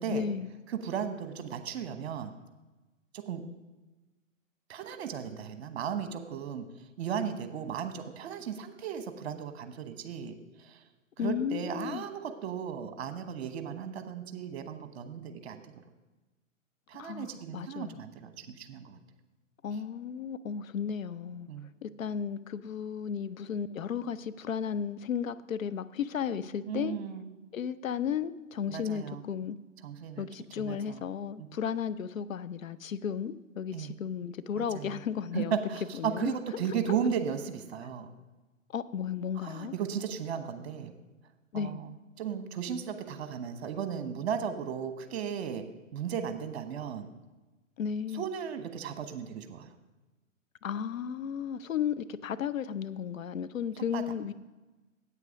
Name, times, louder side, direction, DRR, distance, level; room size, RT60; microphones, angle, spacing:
voice 1, 0.1-0.5 11.2-12.0 17.0-18.0 19.6-21.5 21.8-27.0 27.5-29.6 30.2-35.5 36.0-36.3 38.7-39.7 41.5-41.8 47.8-48.2 50.6-54.3, left 8 dB, 80° left, 14 dB, 0.6 m, -34 dB
voice 2, 0.7-2.3 3.1-3.4 4.7-10.8 11.2-15.6 16.9-19.0 21.5-21.7 26.7-27.3 28.7-29.2 29.8-30.3 30.6-31.0 31.4-31.5 33.7-33.9 34.5-35.0 35.3-38.1 39.4-40.9 41.5-41.9 42.2-45.6 45.9-47.1 48.1-49.7 53.9-54.0, right 7 dB, 50° right, 9 dB, 1.1 m, -35 dB
8.5 x 8.3 x 5.0 m, 1.1 s
figure-of-eight pair, 120°, 40 cm